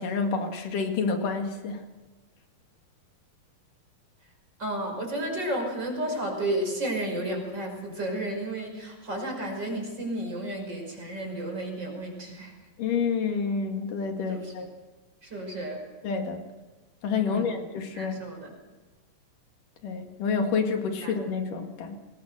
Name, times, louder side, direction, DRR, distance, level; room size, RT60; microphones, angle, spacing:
voice 1, 0.0-1.8 12.8-14.7 16.0-16.4 17.0-18.2 19.8-22.0, left 5 dB, 75° left, 4 dB, 3.7 m, -28 dB
voice 2, 4.6-12.5 14.3-14.5 15.2-15.8 17.2-17.6 17.9-18.5 21.0-21.1, right 1 dB, 30° right, 2 dB, 5.9 m, -32 dB
24.5 x 20.0 x 6.7 m, 1.2 s
omnidirectional pair, 3.8 m